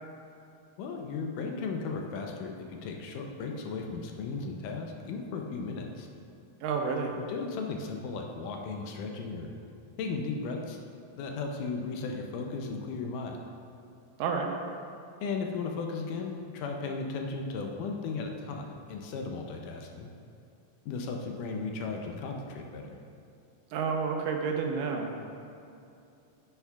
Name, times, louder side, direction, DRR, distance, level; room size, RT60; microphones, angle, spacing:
voice 1, 0.8-6.1 7.1-9.5 10.0-10.8 11.2-13.4 15.2-20.1 20.9-23.0, left 4 dB, 80° left, 2 dB, 2.1 m, -36 dB
voice 2, 6.6-7.1 14.2-14.5 23.7-25.1, right 5 dB, 90° right, 2 dB, 2.3 m, -30 dB
10.5 x 7.1 x 2.3 m, 2.6 s
omnidirectional pair, 3.9 m